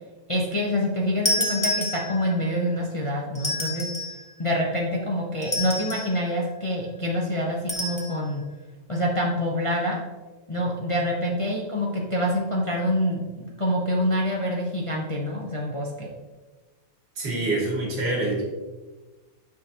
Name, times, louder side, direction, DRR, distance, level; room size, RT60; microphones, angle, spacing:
voice 1, 0.3-3.9 4.4-8.4 8.9-10.0 10.5-16.1, equal, 40° left, -3 dB, 0.4 m, -26 dB
sound 1, 1.2-2.4 3.3-4.2 5.4-6.2 7.7-8.1, left 1 dB, 15° left, 0.7 m, -28 dB
voice 2, 17.2-18.4, right 2 dB, 55° right, -5 dB, 3.0 m, -26 dB
9.6 x 6.2 x 3.0 m, 1.3 s
omnidirectional pair, 2.4 m